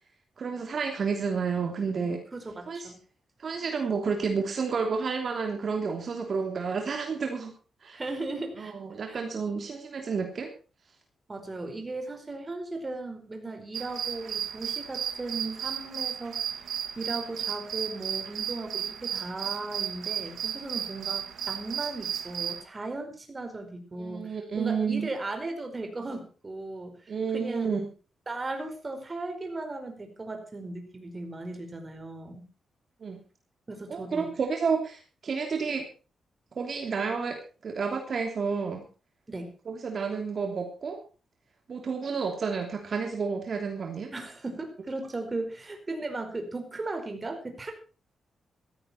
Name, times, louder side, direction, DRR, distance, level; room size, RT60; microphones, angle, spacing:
voice 1, 0.4-2.2 2.7-2.9 3.4-7.5 7.8-8.0 8.6-10.5 24.0-25.1 27.1-27.8 33.0-33.2 33.9-35.8 36.5-38.8 39.7-41.0 41.7-44.1, right 5 dB, 50° right, 3 dB, 3.1 m, -30 dB
voice 2, 2.3-3.0 7.9-8.7 9.1-9.2 11.3-16.6 17.0-27.0 27.3-27.7 28.3-32.5 33.7-34.3 39.3-39.5 44.1-47.7, right 2 dB, 25° right, 6 dB, 4.7 m, -37 dB
sound 1, 13.7-22.6, right 9 dB, 80° right, 1.8 m, -34 dB
16.0 x 14.5 x 4.4 m, 0.36 s
cardioid pair, 105°, 0 cm